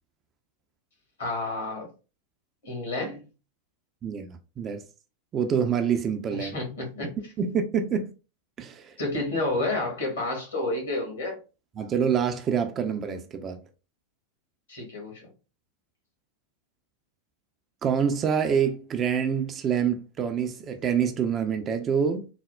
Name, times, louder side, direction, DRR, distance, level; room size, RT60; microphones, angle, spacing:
voice 1, 1.2-1.9 2.6-3.2 6.3-7.1 9.0-11.4 14.7-15.3, left 2 dB, 65° left, 1.5 m, -30 dB
voice 2, 4.0-4.8 5.3-6.6 7.4-8.1 8.6-8.9 11.8-13.6 17.8-22.3, right 7 dB, 25° right, 0.4 m, -26 dB
4.1 x 2.0 x 2.3 m
figure-of-eight pair, 90°, 0 cm